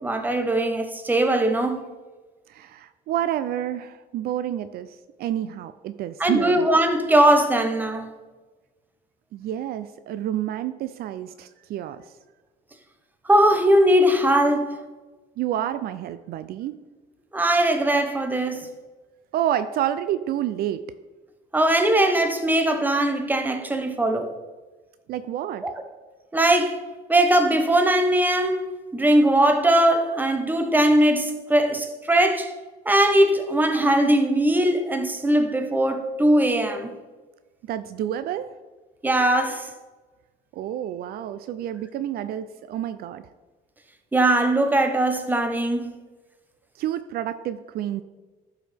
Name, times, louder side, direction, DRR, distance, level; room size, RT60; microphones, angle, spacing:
voice 1, 0.0-1.8 6.2-8.1 13.3-14.7 17.3-18.7 21.5-24.3 25.6-25.7 26.3-26.8 27.1-28.6 28.9-32.5 32.9-36.9 39.0-39.7 44.1-45.9, right 1 dB, 10° right, 0.9 m, -20 dB
voice 2, 2.5-6.7 9.3-12.0 15.4-16.8 19.3-20.8 25.1-25.6 37.7-38.5 40.5-43.2 46.8-48.0, right 11 dB, 65° right, 0.4 m, -29 dB
11.5 x 4.8 x 3.4 m
cardioid pair, 110°, 17 cm